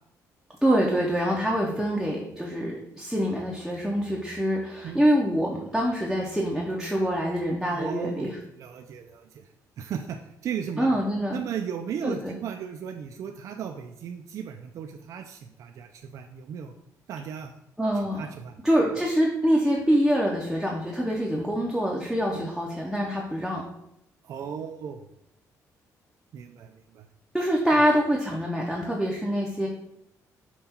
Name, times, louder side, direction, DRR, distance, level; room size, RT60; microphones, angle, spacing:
voice 1, 0.6-8.4 10.8-11.4 12.0-12.3 17.8-18.3 18.6-23.6 27.3-29.7, equal, ahead, -3 dB, 0.6 m, -25 dB
voice 2, 7.7-9.5 9.8-11.0 11.3-16.7 17.1-17.6 18.2-18.6 22.3-22.5 24.2-25.0 26.3-27.1, right 7 dB, 55° right, 5 dB, 0.3 m, -36 dB
5.5 x 2.3 x 4.2 m, 0.78 s
cardioid pair, 150°, 6 cm